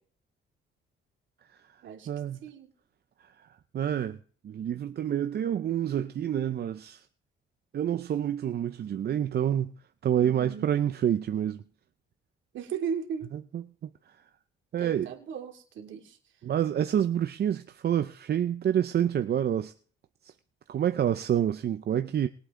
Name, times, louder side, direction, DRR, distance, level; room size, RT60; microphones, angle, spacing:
voice 1, 2.1-2.4 3.7-4.2 4.4-7.0 7.7-9.7 10.0-11.6 13.5-13.6 14.7-15.1 16.4-19.7 20.2-20.3 20.7-22.3, right 10 dB, 55° right, 0.7 m, -27 dB
voice 2, 10.2-10.7 12.5-13.3 14.8-16.2, right 7 dB, 70° right, 2.7 m, -36 dB
21.0 x 8.3 x 3.8 m
cardioid pair, 90°, 20 cm